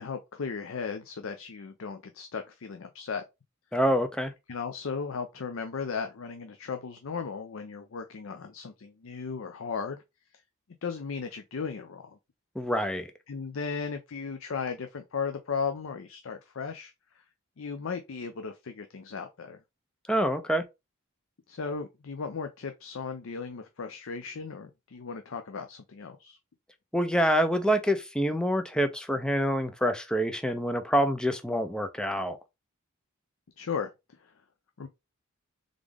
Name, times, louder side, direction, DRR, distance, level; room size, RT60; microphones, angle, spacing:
voice 1, 0.0-3.2 4.5-10.0 10.8-12.2 13.3-16.9 17.6-19.6 21.5-26.4 33.6-33.9 34.2-34.3 34.8-34.9, left 5 dB, 70° left, 0.5 m, -36 dB
voice 2, 3.7-4.3 12.6-13.1 20.1-20.6 26.9-32.4, equal, 5° left, 0.5 m, -26 dB
3.6 x 3.6 x 3.4 m
head